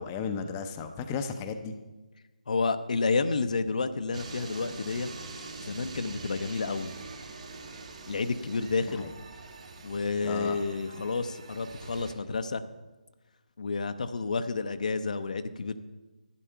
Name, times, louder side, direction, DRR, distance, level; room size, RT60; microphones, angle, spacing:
voice 1, 0.0-1.7 8.9-9.1 10.2-10.6, left 6 dB, 20° left, 6 dB, 0.7 m, -34 dB
voice 2, 2.5-5.1 5.6-6.9 8.1-9.1 9.8-12.7 13.6-15.8, left 4 dB, 60° left, 10 dB, 0.7 m, -30 dB
sound 1, 4.1-12.1, right 3 dB, 50° right, 1.8 m, -44 dB
11.5 x 10.0 x 4.5 m, 1.2 s
figure-of-eight pair, 155°, 5 cm